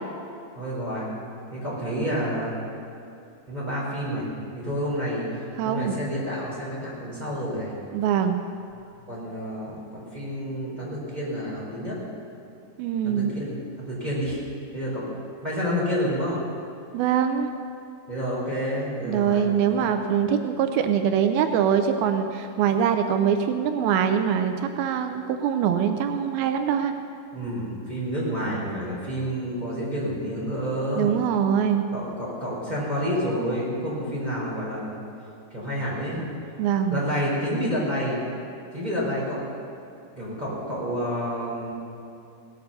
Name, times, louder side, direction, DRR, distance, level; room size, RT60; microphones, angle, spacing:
voice 1, 0.6-1.1 1.5-2.5 3.5-4.3 4.5-5.3 5.6-7.7 9.1-12.0 13.0-14.4 14.7-15.0 15.4-16.4 18.1-19.8 27.3-31.1 31.9-35.0 35.5-36.3 36.9-38.2 38.7-39.4 40.1-41.7, equal, 10° right, -6 dB, 3.9 m, -29 dB
voice 2, 5.6-5.9 7.9-8.4 12.8-13.3 16.9-17.5 19.0-26.9 31.0-31.8 36.6-37.0, right 8 dB, 85° right, 7 dB, 2.5 m, -23 dB
17.5 x 9.3 x 6.8 m, 2.6 s
omnidirectional pair, 4.3 m